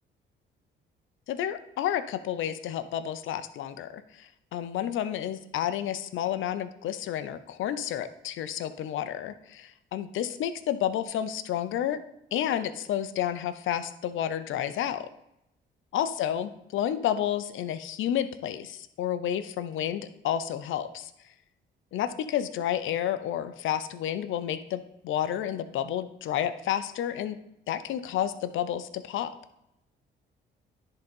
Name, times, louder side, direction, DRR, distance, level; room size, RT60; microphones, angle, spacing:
voice 1, 1.3-12.0 12.3-15.1 15.9-21.1 21.9-27.4 27.7-29.3, left 10 dB, 80° left, 11 dB, 0.7 m, -30 dB
10.5 x 4.0 x 5.4 m, 0.82 s
cardioid pair, 90°, 20 cm